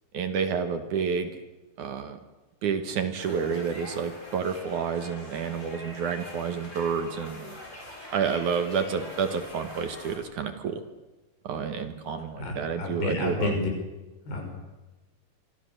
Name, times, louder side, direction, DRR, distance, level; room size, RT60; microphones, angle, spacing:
voice 1, 0.1-1.4 1.8-2.2 2.6-7.6 8.1-10.8 11.4-13.6, right 6 dB, 60° right, 8 dB, 2.5 m, -29 dB
sound 1, 3.2-10.2, left 1 dB, 15° left, 6.8 m, -44 dB
voice 2, 12.4-13.7 14.3-14.5, left 2 dB, 85° left, 2 dB, 7.6 m, -30 dB
25.0 x 25.0 x 6.7 m, 1.1 s
omnidirectional pair, 4.5 m